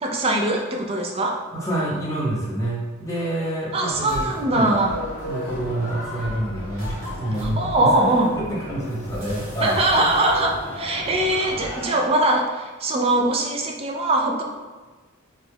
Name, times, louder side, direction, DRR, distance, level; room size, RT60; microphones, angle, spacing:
voice 1, 0.0-1.4 3.7-5.0 7.4-8.3 9.6-14.4, right 2 dB, 30° right, 2 dB, 0.3 m, -22 dB
voice 2, 1.5-4.7 5.2-9.8, right 1 dB, 15° left, -7 dB, 0.7 m, -27 dB
Content warning, 3.9-12.2, left 1 dB, 65° right, 1.0 m, -34 dB
2.9 x 2.2 x 3.4 m, 1.3 s
head